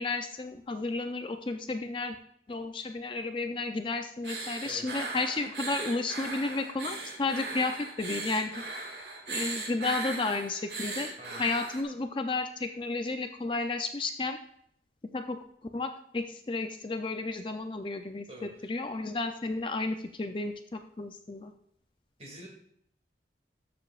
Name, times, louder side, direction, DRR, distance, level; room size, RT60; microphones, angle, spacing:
voice 1, 0.0-2.2 2.5-8.6 9.3-14.4 15.1-15.4 15.7-18.2 18.6-21.5, left 3 dB, 30° left, 7 dB, 0.4 m, -32 dB
sound 1, 4.2-11.8, right 3 dB, 70° right, 1.9 m, -38 dB
voice 2, 18.3-18.7 22.2-22.5, equal, 35° right, 0 dB, 2.3 m, -46 dB
13.5 x 6.9 x 2.4 m, 0.67 s
head